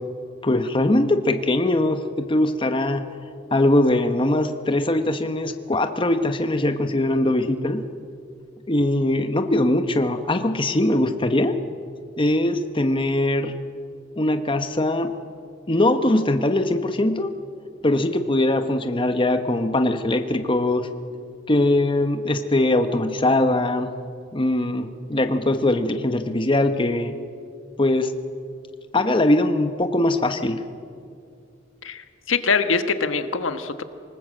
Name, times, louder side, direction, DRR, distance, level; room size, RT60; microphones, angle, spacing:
voice 1, 0.4-3.0 3.5-7.8 8.7-11.6 12.2-13.5 14.2-15.1 15.7-17.3 17.8-20.9 21.5-23.9 24.3-27.1 27.8-28.1 28.9-30.6, left 1 dB, 25° left, 7 dB, 1.0 m, -21 dB
voice 2, 31.8-33.8, left 5 dB, 90° left, 9 dB, 1.3 m, -23 dB
26.0 x 19.0 x 7.7 m, 2.3 s
head